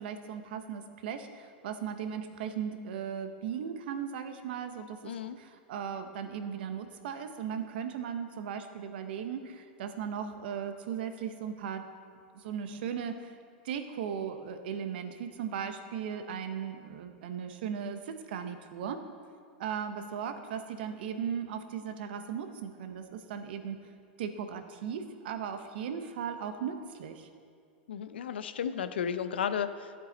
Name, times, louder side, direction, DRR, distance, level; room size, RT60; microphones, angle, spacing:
voice 1, 0.0-11.8 12.3-13.3 13.6-19.0 19.6-23.8 24.2-27.3, right 7 dB, 70° right, 8 dB, 0.9 m, -37 dB
voice 2, 5.0-5.4 27.9-30.0, left 8 dB, 85° left, 12 dB, 0.5 m, -33 dB
12.5 x 7.7 x 4.0 m, 2.2 s
hypercardioid pair, 120°, 6 cm